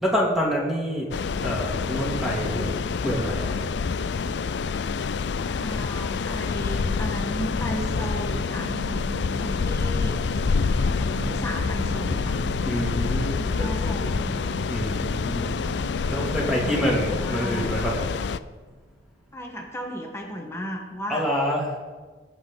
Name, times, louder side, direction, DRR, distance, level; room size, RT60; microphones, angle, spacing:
voice 1, 0.0-1.1 1.3-3.5 12.6-13.4 14.7-15.5 15.9-17.9 21.1-21.6, equal, ahead, -4 dB, 2.7 m, -27 dB
sound 1, 1.1-18.4, left 5 dB, 75° left, 0.4 m, -27 dB
voice 2, 5.5-10.2 10.8-12.4 13.3-14.4 16.4-17.7 19.3-21.3, equal, 15° left, 1 dB, 1.3 m, -35 dB
sound 2, 6.2-19.1, right 2 dB, 45° right, 1.0 m, -39 dB
21.5 x 8.0 x 3.9 m, 1.4 s
head